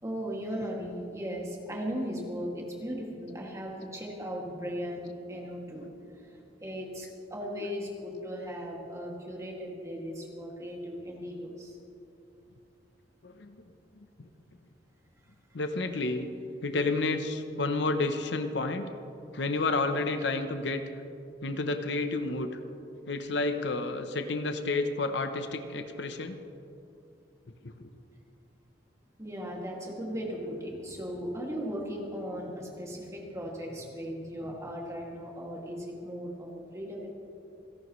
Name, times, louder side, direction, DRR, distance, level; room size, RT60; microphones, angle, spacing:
voice 1, 0.0-11.8 29.2-37.1, equal, 15° right, -2 dB, 2.3 m, -37 dB
voice 2, 13.2-13.6 14.0-14.1 15.5-16.3 16.6-18.9 19.3-20.8 21.4-22.6 23.1-26.4 27.6-27.9, left 3 dB, 65° left, 8 dB, 0.8 m, -30 dB
27.5 x 11.0 x 3.2 m, 2.6 s
head